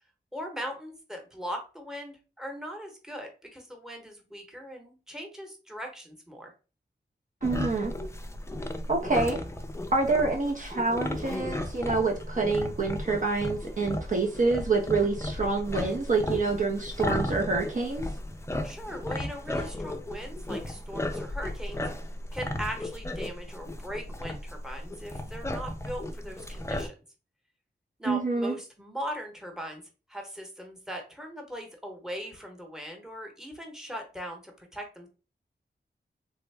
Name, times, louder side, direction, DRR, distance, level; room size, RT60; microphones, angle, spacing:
voice 1, 0.3-6.5 18.6-21.8 22.3-26.9 28.0-29.8 30.1-35.1, equal, 5° right, 0.9 m, -39 dB
sound 1, 7.4-26.9, left 1 dB, 15° left, 0.4 m, -35 dB
voice 2, 7.4-7.9 8.9-9.4 9.9-18.1 28.0-28.5, right 3 dB, 45° right, 0.5 m, -27 dB
3.5 x 2.0 x 3.2 m
wide cardioid pair, 85°, 19 cm